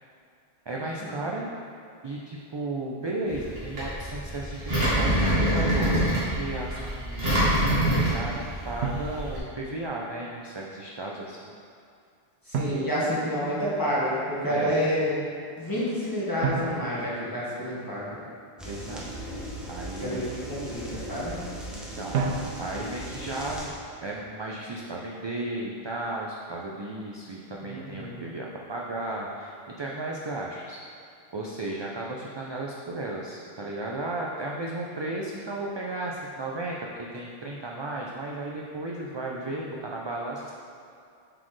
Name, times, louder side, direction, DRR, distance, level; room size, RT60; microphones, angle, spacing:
voice 1, 0.7-1.5 2.0-11.5 12.6-12.8 14.4-14.8 18.6-19.1 19.7-20.2 21.7-22.2 22.6-23.7 24.0-31.0 31.3-40.5, right 2 dB, 45° right, -3 dB, 0.3 m, -34 dB
Engine, 3.3-9.4, right 1 dB, 70° right, 1.9 m, -26 dB
Drum, 6.4-6.6 8.8-10.0 12.5-13.9 16.4-18.1 22.1-23.1, right 5 dB, 90° right, 0.9 m, -33 dB
voice 2, 12.5-15.2 15.6-18.2 20.0-21.4 27.6-28.2, equal, 20° left, -9 dB, 1.5 m, -29 dB
sound 1, 18.6-23.7, right 1 dB, ahead, 0.8 m, -38 dB
7.5 x 4.2 x 3.2 m, 2.4 s
omnidirectional pair, 1.0 m